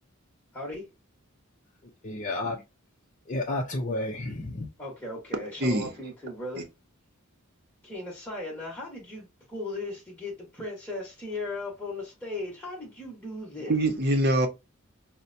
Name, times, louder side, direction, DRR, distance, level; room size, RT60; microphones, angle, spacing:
voice 1, 0.5-0.9 4.8-6.7 7.8-13.7, left 2 dB, 10° left, 1.1 m, -37 dB
voice 2, 2.0-2.6 3.3-4.7, left 2 dB, 35° left, 0.6 m, -31 dB
voice 3, 5.6-5.9 6.6-6.7 13.6-14.5, right 1 dB, 50° right, 0.8 m, -24 dB
5.5 x 2.2 x 2.5 m
head